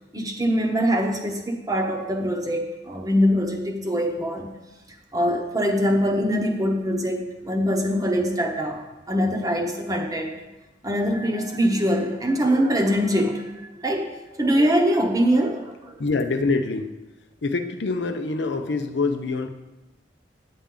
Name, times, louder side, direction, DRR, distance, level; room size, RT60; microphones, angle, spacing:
voice 1, 0.1-4.6 5.1-10.4 10.8-14.1 14.4-16.0, equal, 20° right, 3 dB, 0.9 m, -23 dB
voice 2, 16.0-16.9 17.4-19.5, left 3 dB, 65° left, 7 dB, 0.6 m, -25 dB
8.6 x 8.3 x 3.8 m, 1.1 s
head